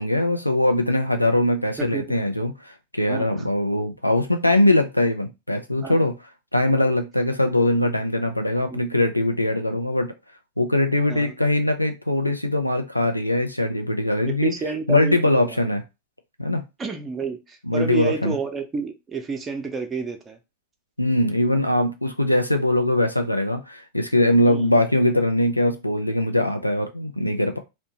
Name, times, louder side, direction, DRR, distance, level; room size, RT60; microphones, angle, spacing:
voice 1, 0.0-6.2 6.5-10.1 10.6-14.5 14.9-15.8 16.4-16.6 17.6-18.4 21.0-27.6, left 1 dB, 85° left, 0.4 m, -21 dB
voice 2, 14.4-15.7 16.8-20.4 24.5-24.7, right 4 dB, 15° right, 0.6 m, -30 dB
2.7 x 2.1 x 2.8 m
figure-of-eight pair, 90°, 0 cm